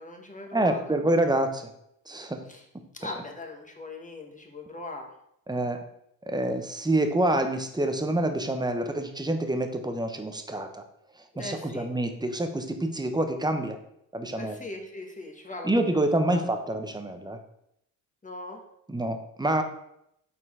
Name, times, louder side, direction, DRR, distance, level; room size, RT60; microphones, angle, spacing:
voice 1, 0.0-0.9 2.5-2.6 2.9-5.1 11.3-11.9 14.4-15.8 16.3-16.4 18.2-18.6, left 2 dB, 20° left, 1 dB, 1.5 m, -40 dB
voice 2, 0.5-1.7 2.1-2.4 5.5-5.8 6.3-10.8 11.4-13.8 14.1-14.6 15.6-17.4 18.9-19.6, right 1 dB, 10° right, 6 dB, 0.9 m, -27 dB
6.8 x 4.3 x 3.7 m, 0.75 s
supercardioid pair, 60°, 41 cm